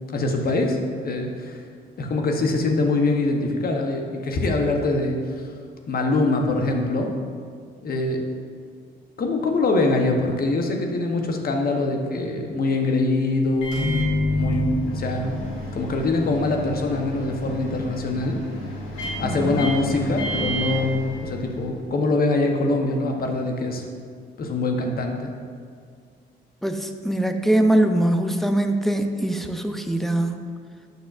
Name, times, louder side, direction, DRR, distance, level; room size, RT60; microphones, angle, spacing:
voice 1, 0.1-0.8 1.0-1.6 2.0-5.2 5.9-7.1 7.8-8.4 9.2-13.9 14.3-15.5 15.7-18.4 19.2-23.8 24.4-25.3, left 2 dB, 50° left, 2 dB, 0.9 m, -23 dB
Microwave oven, 13.6-21.7, left 1 dB, 85° left, 1.5 m, -29 dB
voice 2, 19.2-19.7 26.6-30.4, right 1 dB, ahead, 6 dB, 0.5 m, -22 dB
9.2 x 6.0 x 2.5 m, 2.1 s
cardioid pair, 90°, 20 cm